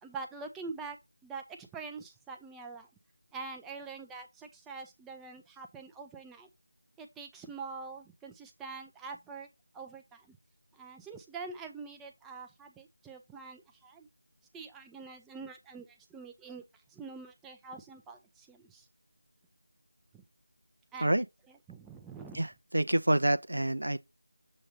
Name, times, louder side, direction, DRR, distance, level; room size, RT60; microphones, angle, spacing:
voice 1, 0.0-2.9 3.3-6.5 7.0-9.5 9.7-10.4 10.7-14.1 14.5-18.9 20.1-20.2 20.9-22.4, right 4 dB, 5° right, 0.5 m, -45 dB
voice 2, 22.3-24.0, right 1 dB, 75° right, 0.5 m, -27 dB
7.4 x 2.7 x 5.0 m
figure-of-eight pair, 165°, 0 cm